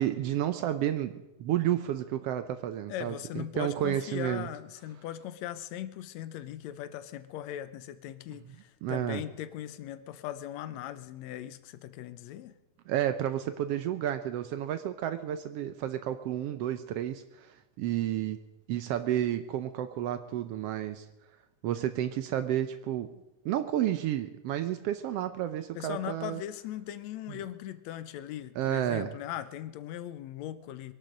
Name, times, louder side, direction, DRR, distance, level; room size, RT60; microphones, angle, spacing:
voice 1, 0.0-4.5 8.8-9.2 12.9-18.4 18.7-21.0 21.6-23.1 23.4-26.4 28.6-29.1, right 11 dB, 85° right, 10 dB, 1.3 m, -31 dB
voice 2, 2.9-12.5 25.8-30.9, left 12 dB, 75° left, 12 dB, 1.8 m, -39 dB
21.5 x 12.0 x 5.1 m, 0.93 s
omnidirectional pair, 3.6 m